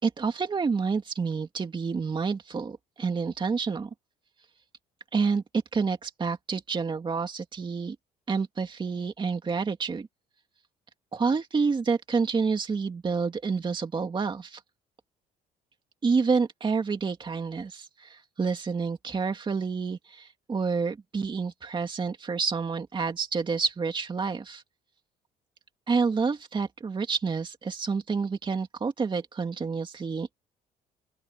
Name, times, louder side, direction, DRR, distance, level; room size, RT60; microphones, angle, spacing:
voice 1, 0.0-3.9 5.1-8.0 8.3-10.1 11.1-14.6 16.0-24.6 25.9-30.4, right 5 dB, 30° right, 2.2 m, -28 dB
open air
cardioid pair, 110°, 17 cm